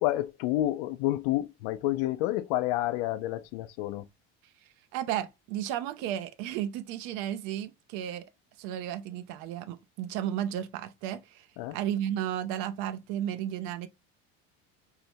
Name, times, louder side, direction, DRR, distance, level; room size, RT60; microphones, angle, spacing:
voice 1, 0.0-4.1 11.6-11.8, left 15 dB, 85° left, 0.5 m, -29 dB
voice 2, 4.9-8.2 8.6-13.9, right 11 dB, 70° right, 0.6 m, -33 dB
4.7 x 2.1 x 2.6 m
cardioid pair, 165°, 30 cm